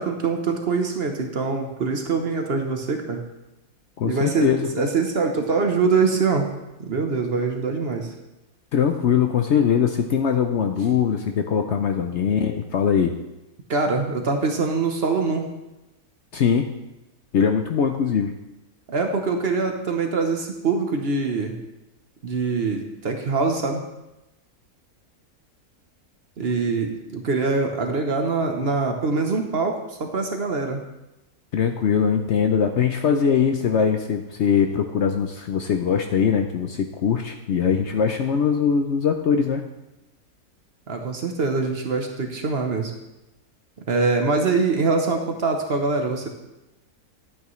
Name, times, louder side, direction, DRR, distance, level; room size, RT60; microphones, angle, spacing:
voice 1, 0.0-3.2 4.0-6.5 6.8-8.1 13.7-15.5 18.9-21.6 22.2-23.8 26.4-30.8 40.9-42.9 43.9-46.3, right 4 dB, 50° right, 4 dB, 1.0 m, -24 dB
voice 2, 4.0-4.9 8.7-13.1 16.3-16.7 17.3-18.3 31.5-39.7, left 7 dB, 65° left, 5 dB, 0.8 m, -21 dB
11.0 x 8.5 x 3.1 m, 0.96 s
omnidirectional pair, 1.6 m